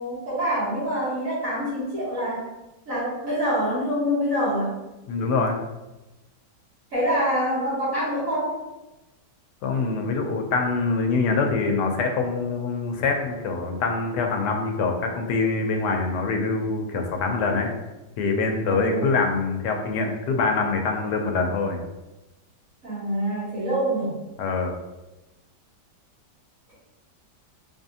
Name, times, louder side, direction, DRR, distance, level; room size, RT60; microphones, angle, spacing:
voice 1, 0.0-2.5 2.9-4.7 6.9-8.6 18.7-19.2 22.8-24.2, equal, 50° right, -10 dB, 1.7 m, -26 dB
voice 2, 5.1-5.6 9.6-17.7 18.2-21.8 24.4-24.8, left 4 dB, 80° left, 3 dB, 1.1 m, -24 dB
3.8 x 3.4 x 2.7 m, 1.0 s
omnidirectional pair, 1.9 m